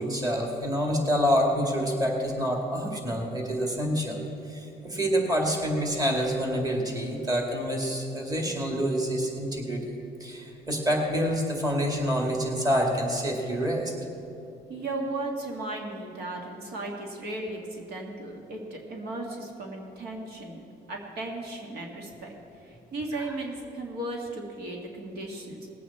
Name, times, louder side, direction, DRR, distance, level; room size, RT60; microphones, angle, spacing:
voice 1, 0.0-13.9 23.3-23.4, equal, 20° right, 0 dB, 2.3 m, -27 dB
voice 2, 14.7-20.6 20.9-22.3 22.6-25.7, right 2 dB, 70° right, 1 dB, 1.9 m, -36 dB
19.5 x 8.5 x 4.3 m, 2.7 s
cardioid pair, 110°, 17 cm